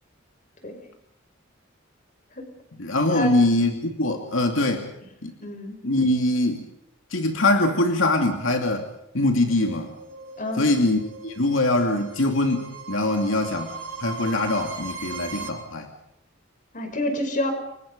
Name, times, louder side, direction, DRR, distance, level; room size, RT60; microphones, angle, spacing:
voice 1, 2.8-4.9 5.2-5.3 5.8-6.7 7.1-8.9 9.1-9.9 10.6-15.9, left 2 dB, 90° left, 3 dB, 2.6 m, -23 dB
voice 2, 5.4-5.8 10.4-10.7 16.7-17.5, left 1 dB, 40° left, 5 dB, 5.3 m, -28 dB
sound 1, 9.5-15.5, right 4 dB, 90° right, 6.5 m, -38 dB
29.5 x 23.5 x 5.4 m, 0.80 s
head